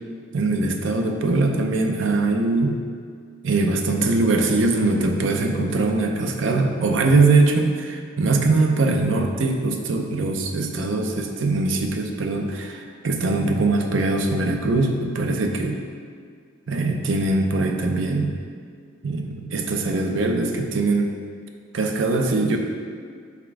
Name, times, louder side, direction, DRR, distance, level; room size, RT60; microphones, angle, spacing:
voice 1, 0.3-2.8 3.4-15.8 16.7-18.4 19.0-21.2 21.7-22.6, right 3 dB, 75° right, 3 dB, 0.6 m, -22 dB
5.9 x 3.4 x 4.8 m, 2.1 s
head